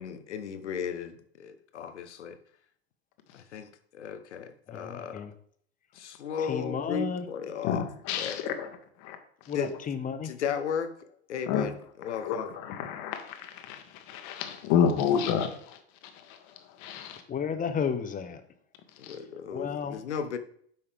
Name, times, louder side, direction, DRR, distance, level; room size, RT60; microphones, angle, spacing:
voice 1, 0.0-2.4 3.3-5.2 5.9-7.9 8.2-8.4 9.5-9.7 10.2-10.9 11.3-12.5 19.0-20.4, left 7 dB, 85° left, 0.9 m, -35 dB
voice 2, 4.7-5.3 6.5-7.3 9.5-10.3 17.3-18.4 19.5-20.0, left 6 dB, 25° left, 1.0 m, -32 dB
voice 3, 7.6-8.7 9.0-9.2 11.5-11.7 12.2-15.8 16.8-17.2, left 8 dB, 55° left, 1.5 m, -29 dB
9.0 x 5.5 x 3.5 m
hypercardioid pair, 90°, 34 cm